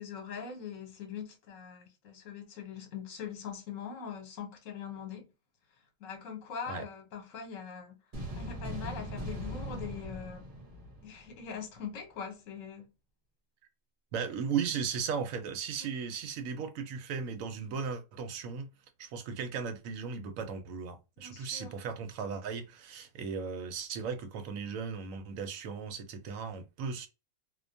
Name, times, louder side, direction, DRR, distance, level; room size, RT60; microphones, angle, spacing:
voice 1, 0.0-5.3 6.0-8.0 8.3-10.4 11.0-12.9 15.8-15.9 21.2-21.7, left 7 dB, 70° left, 1.2 m, -42 dB
sound 1, 8.1-11.6, equal, 45° right, 1.0 m, -40 dB
voice 2, 14.1-18.7 19.0-27.1, right 6 dB, 75° right, 1.0 m, -36 dB
2.5 x 2.2 x 2.5 m
omnidirectional pair, 1.4 m